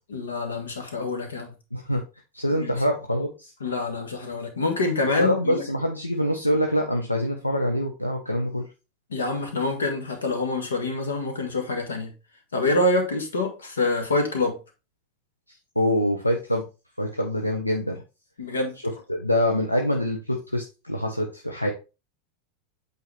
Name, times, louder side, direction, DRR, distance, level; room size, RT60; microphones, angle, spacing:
voice 1, 0.1-1.5 2.5-2.8 3.6-5.6 9.1-12.1 12.5-14.6 18.4-18.8, left 2 dB, 75° left, 1.6 m, -26 dB
voice 2, 1.7-2.0 2.3-3.5 5.2-8.7 15.8-16.7 17.0-18.0 18.8-21.7, equal, 90° left, 0.8 m, -25 dB
8.2 x 4.0 x 3.4 m
figure-of-eight pair, 85°, 0 cm